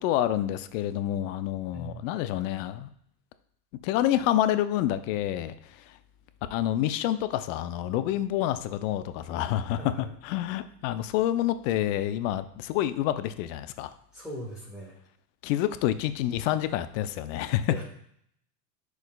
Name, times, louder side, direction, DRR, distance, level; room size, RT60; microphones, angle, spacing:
voice 1, 0.0-2.9 3.8-5.5 6.5-9.9 10.2-13.9 15.4-17.7, left 12 dB, 55° left, 12 dB, 0.6 m, -28 dB
voice 2, 1.7-2.0 9.7-10.1 14.1-14.9 17.7-17.8, equal, ahead, -6 dB, 1.5 m, -40 dB
10.5 x 4.8 x 2.3 m, 0.68 s
supercardioid pair, 125°, 48 cm